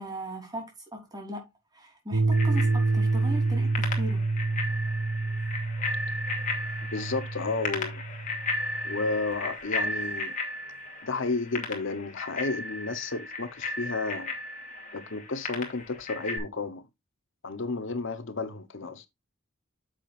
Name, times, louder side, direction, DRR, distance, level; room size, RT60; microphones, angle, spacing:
voice 1, 0.0-1.5 1.7-4.2, right 1 dB, 20° right, 3.4 m, -38 dB
sound 1, 2.1-9.2, right 3 dB, 80° right, 0.7 m, -28 dB
Bicycle bell, 2.3-16.4, left 2 dB, 40° left, 2.5 m, -35 dB
voice 2, 6.9-8.0 8.8-10.3 11.0-14.3 14.9-16.8 17.4-19.1, left 3 dB, 60° left, 0.9 m, -32 dB
9.7 x 7.3 x 2.5 m
head